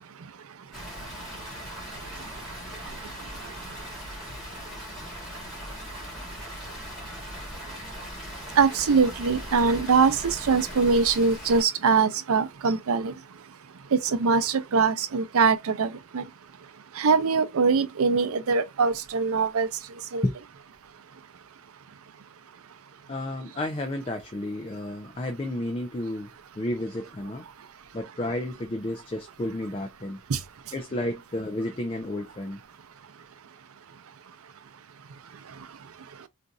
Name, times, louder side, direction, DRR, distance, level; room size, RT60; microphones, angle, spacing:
Water, 0.7-11.6, equal, ahead, 1.9 m, -39 dB
voice 1, 8.6-13.1 14.2-15.9 16.1-16.2 17.0-19.7 20.1-20.2, right 5 dB, 85° right, 0.5 m, -22 dB
voice 2, 23.1-26.3 26.6-27.4 27.9-30.2 30.7-32.6, left 1 dB, 25° left, 0.4 m, -31 dB
4.0 x 2.6 x 2.3 m
head